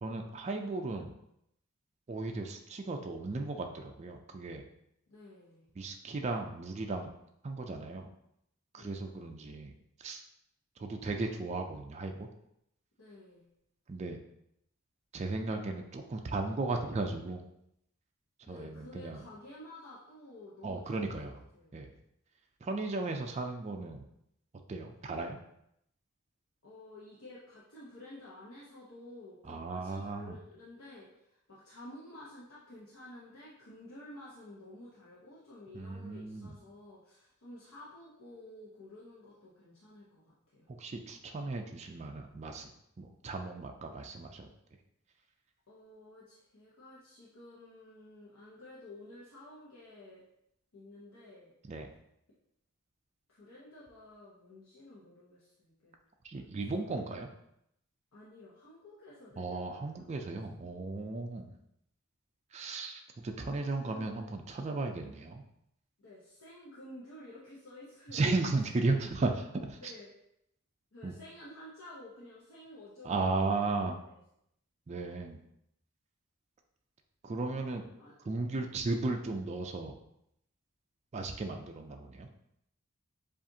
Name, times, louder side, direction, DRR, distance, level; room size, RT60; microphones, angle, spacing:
voice 1, 0.0-1.1 2.1-4.6 5.8-7.1 7.4-8.1 8.7-9.7 10.0-10.2 10.8-12.3 13.9-14.2 15.1-17.4 18.5-19.2 20.6-21.3 21.7-21.9 22.6-24.1 24.7-25.4 29.4-30.4 35.7-36.6 40.8-42.7 43.0-44.5 51.7-51.9 56.2-57.3 59.4-61.6 62.5-65.4 68.1-69.9 71.0-71.1 73.0-74.0 74.9-75.4 77.2-77.8 78.2-80.0 81.1-82.3, right 3 dB, 30° right, 4 dB, 0.3 m, -35 dB
voice 2, 5.1-5.7 8.7-9.3 13.0-13.5 18.4-21.8 26.6-40.7 45.7-50.2 50.7-51.5 53.3-55.9 56.4-57.0 58.1-60.3 63.4-64.3 66.0-68.3 69.6-70.1 70.9-73.7 74.0-74.1 78.0-78.7, left 1 dB, 70° left, -7 dB, 0.9 m, -52 dB
7.2 x 2.5 x 2.7 m, 0.78 s
head